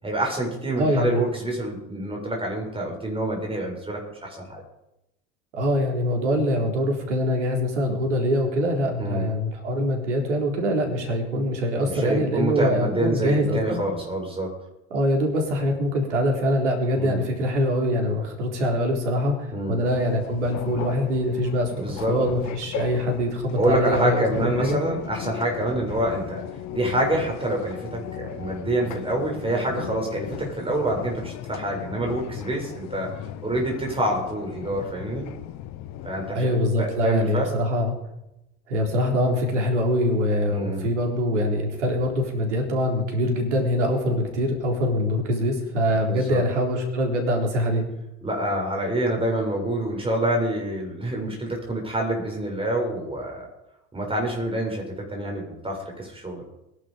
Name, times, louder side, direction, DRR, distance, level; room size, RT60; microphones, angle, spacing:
voice 1, 0.0-4.6 9.0-9.2 11.9-14.5 17.0-17.2 19.5-19.8 21.7-22.2 23.6-26.4 26.7-33.1 33.4-35.3 36.0-37.5 40.5-40.9 46.1-46.4 48.2-53.5 53.9-54.8 55.1-56.4, right 1 dB, 15° right, 0 dB, 7.3 m, -27 dB
voice 2, 0.8-1.2 5.5-13.8 14.9-24.8 36.3-37.9 38.7-47.9, equal, 80° right, 2 dB, 4.0 m, -24 dB
sound 1, 19.8-36.3, left 12 dB, 50° left, 1.3 m, -37 dB
21.5 x 11.5 x 5.3 m, 0.91 s
hypercardioid pair, 70°, 35 cm